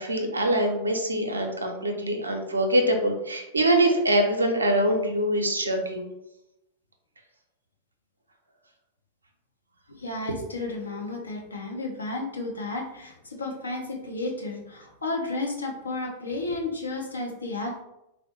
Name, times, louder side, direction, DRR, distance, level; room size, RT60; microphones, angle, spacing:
voice 1, 0.0-6.1, right 1 dB, 80° right, 4 dB, 0.5 m, -24 dB
voice 2, 9.9-17.8, left 2 dB, 75° left, 1 dB, 0.6 m, -32 dB
3.7 x 2.0 x 2.9 m, 0.89 s
figure-of-eight pair, 90°, 0 cm